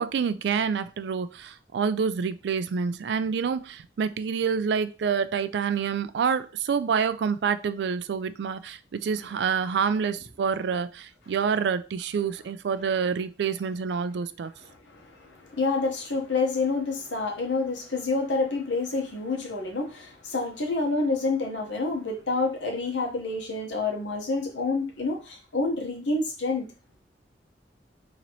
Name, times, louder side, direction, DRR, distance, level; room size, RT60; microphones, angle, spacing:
voice 1, 0.0-14.5, right 6 dB, 70° right, 0.3 m, -27 dB
voice 2, 14.7-26.7, left 3 dB, 80° left, 1.1 m, -28 dB
3.9 x 3.0 x 3.0 m
head